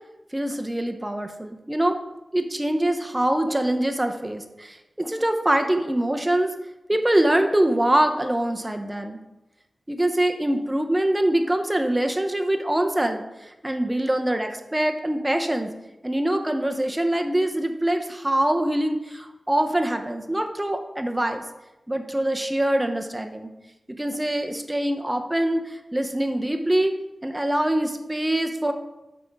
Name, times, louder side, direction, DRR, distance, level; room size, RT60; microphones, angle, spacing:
voice 1, 0.3-2.0 2.3-6.5 6.9-9.2 9.9-15.7 16.0-21.4 21.9-23.5 23.9-26.9 27.2-28.7, right 1 dB, 15° right, 5 dB, 0.6 m, -24 dB
7.6 x 3.4 x 5.2 m, 0.97 s
wide cardioid pair, 120°, 0 cm